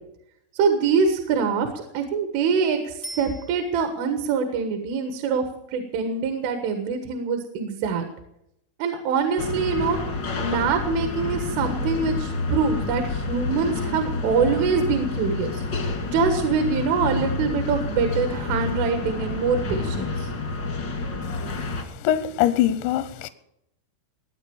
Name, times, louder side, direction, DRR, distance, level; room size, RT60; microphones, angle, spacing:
voice 1, 0.6-5.4 5.7-8.1 8.8-10.0 10.4-15.6 16.1-20.3, right 5 dB, 75° right, 3.9 m, -24 dB
Bicycle bell, 3.0-4.1 13.2-13.3, right 1 dB, 45° left, 0.6 m, -40 dB
sound 1, 9.4-21.8, left 3 dB, 65° left, 1.1 m, -29 dB
voice 2, 21.6-23.3, left 11 dB, 80° left, 2.6 m, -23 dB
20.5 x 9.4 x 7.1 m
omnidirectional pair, 5.8 m